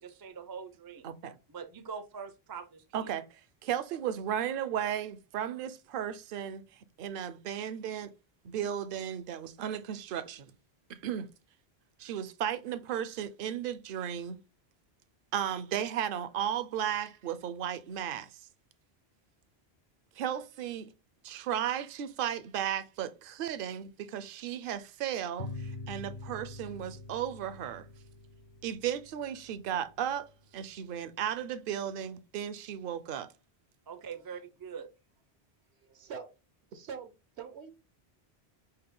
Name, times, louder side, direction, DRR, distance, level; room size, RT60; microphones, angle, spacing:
voice 1, 0.0-1.1 1.5-3.1 33.9-34.9, right 6 dB, 35° right, 0.3 m, -43 dB
voice 2, 1.0-1.4 2.9-6.6 7.0-8.1 8.4-10.5 10.9-11.3 12.0-14.4 15.3-18.4 20.2-20.9 21.2-27.9 28.6-30.3 30.5-33.3, right 9 dB, 65° right, 0.7 m, -35 dB
sound 1, 25.4-30.5, left 2 dB, 55° left, 0.7 m, -45 dB
voice 3, 35.7-36.3 36.7-37.1 37.4-37.7, right 6 dB, 85° right, 1.0 m, -43 dB
5.5 x 2.1 x 3.6 m
omnidirectional pair, 1.1 m